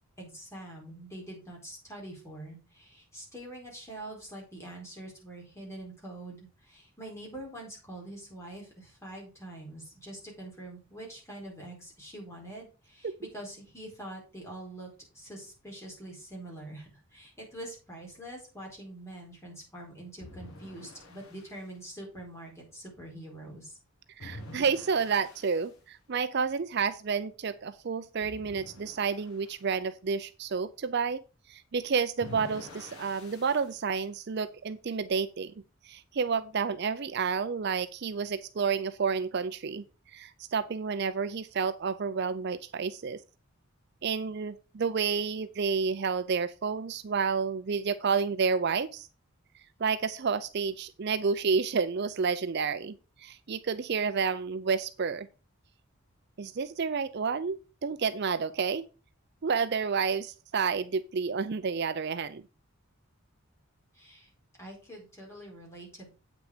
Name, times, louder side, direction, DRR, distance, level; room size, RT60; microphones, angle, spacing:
voice 1, 0.2-14.9 15.1-23.8 63.9-64.3 64.6-66.1, right 1 dB, 15° left, 4.4 m, -45 dB
sound 1, 20.2-21.6 24.2-25.7 28.2-29.6 32.2-33.8, left 1 dB, 85° left, 1.9 m, -47 dB
voice 2, 24.2-35.5 35.8-43.2 44.0-49.1 49.8-55.3 56.4-58.8 59.4-62.4, right 5 dB, 50° right, 0.5 m, -30 dB
8.5 x 6.1 x 5.0 m
head